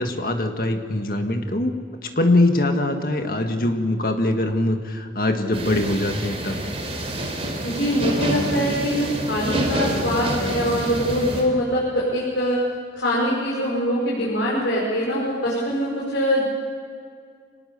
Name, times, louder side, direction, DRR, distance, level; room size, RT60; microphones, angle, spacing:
voice 1, 0.0-1.7 2.2-6.6, left 1 dB, 55° left, 5 dB, 1.9 m, -22 dB
sound 1, 5.5-11.4, right 1 dB, 35° right, 3.6 m, -27 dB
voice 2, 7.6-12.6 13.0-16.4, equal, 90° left, -6 dB, 5.5 m, -23 dB
26.0 x 19.0 x 6.9 m, 2.2 s
head